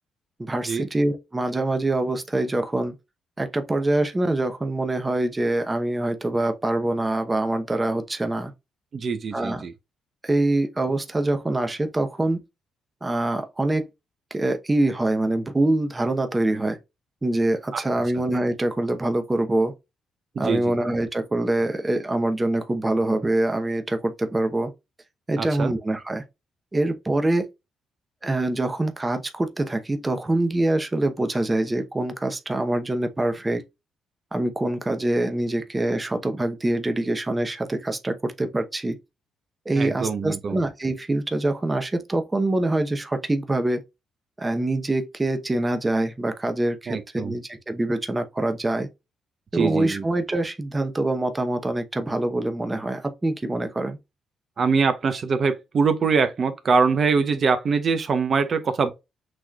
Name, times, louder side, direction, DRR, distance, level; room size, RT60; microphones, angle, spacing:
voice 1, 0.4-2.9 3.4-8.5 9.3-9.6 10.2-12.4 13.0-13.9 14.3-16.8 17.2-19.7 20.4-24.7 25.3-26.2 26.7-27.5 28.2-33.6 34.3-39.0 39.7-43.8 44.4-48.9 49.5-54.0, right 2 dB, 20° right, 0.8 m, -24 dB
voice 2, 8.9-9.7 17.7-17.8 18.1-18.2 20.3-20.7 25.4-25.7 39.8-40.6 46.9-47.3 49.5-50.0 54.6-58.9, right 5 dB, 50° right, 0.8 m, -23 dB
6.1 x 3.1 x 2.3 m
cardioid pair, 75°, 0 cm